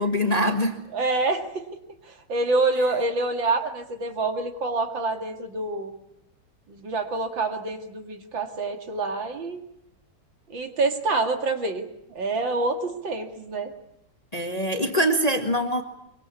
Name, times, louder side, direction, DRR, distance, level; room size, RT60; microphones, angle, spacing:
voice 1, 0.0-0.7 14.3-15.8, equal, 20° left, 6 dB, 1.7 m, -23 dB
voice 2, 0.9-1.6 2.3-5.9 6.7-9.6 10.5-11.8 12.1-13.7, right 3 dB, 60° right, 6 dB, 3.1 m, -26 dB
24.5 x 24.0 x 8.5 m, 0.79 s
omnidirectional pair, 2.3 m